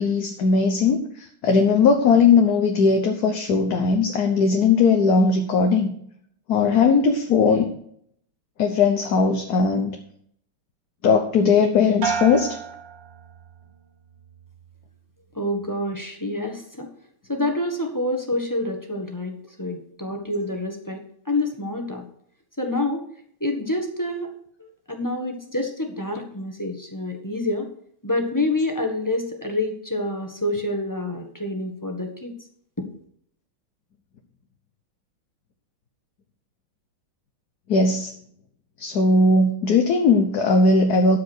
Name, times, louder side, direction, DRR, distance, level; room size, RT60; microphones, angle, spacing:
voice 1, 0.0-5.9 6.5-7.7 8.6-10.0 11.0-12.6 37.7-38.1 38.8-41.2, left 4 dB, 55° left, 4 dB, 1.4 m, -19 dB
sound 1, 12.0-13.7 14.1-14.7, right 7 dB, 60° right, 1.8 m, -31 dB
voice 2, 15.3-16.9 17.3-22.0 22.6-23.1 23.4-24.3 24.6-27.7 28.0-32.3 32.8-32.9, left 2 dB, 10° left, 3 dB, 1.3 m, -27 dB
13.0 x 5.0 x 6.3 m, 0.65 s
omnidirectional pair, 2.3 m